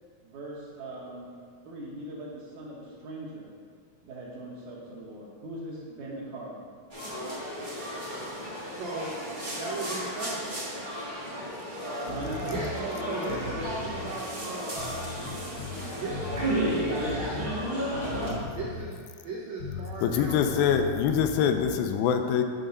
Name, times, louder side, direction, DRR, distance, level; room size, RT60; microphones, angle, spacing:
voice 1, 0.2-1.3 1.6-3.5 4.0-6.5 12.0-13.0 20.1-20.4, right 1 dB, 60° right, -6 dB, 2.5 m, -40 dB
sound 1, 6.9-18.3, equal, 45° right, 0.6 m, -33 dB
voice 2, 8.7-9.2 9.5-10.5 11.2-11.4 12.5-15.0 16.0-17.7 18.5-20.9, right 2 dB, 90° right, -4 dB, 1.5 m, -37 dB
sound 2, 12.1-12.7 13.2-14.0 14.8-15.8 16.1-17.6 17.9-18.9 19.6-21.7, left 2 dB, 65° left, 1.1 m, -38 dB
voice 3, 20.0-22.4, left 8 dB, 85° left, 7 dB, 2.3 m, -24 dB
9.3 x 3.8 x 5.4 m, 2.1 s
omnidirectional pair, 4.3 m